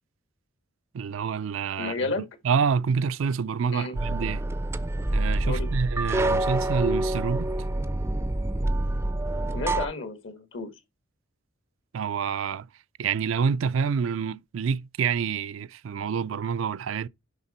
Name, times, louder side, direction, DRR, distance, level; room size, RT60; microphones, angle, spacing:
voice 1, 0.9-1.9 2.4-4.4 5.1-7.5 11.9-12.7 13.0-17.1, right 6 dB, 80° right, 0.4 m, -27 dB
voice 2, 1.8-2.2 3.7-4.0 5.4-5.7 9.5-10.7, left 3 dB, 75° left, 1.8 m, -32 dB
sound 1, 3.9-9.9, right 1 dB, 15° right, 0.4 m, -27 dB
10.5 x 3.7 x 4.2 m
head